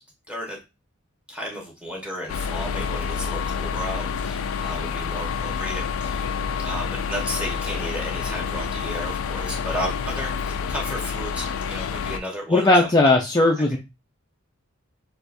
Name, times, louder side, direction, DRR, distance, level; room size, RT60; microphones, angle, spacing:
voice 1, 0.3-0.6 1.3-6.3 6.6-12.9, equal, 5° right, -1 dB, 1.2 m, -33 dB
sound 1, 2.3-12.2, left 6 dB, 80° left, 0.4 m, -28 dB
voice 2, 12.5-13.8, left 2 dB, 20° left, 0 dB, 0.4 m, -17 dB
6.4 x 2.5 x 2.6 m, 0.26 s
head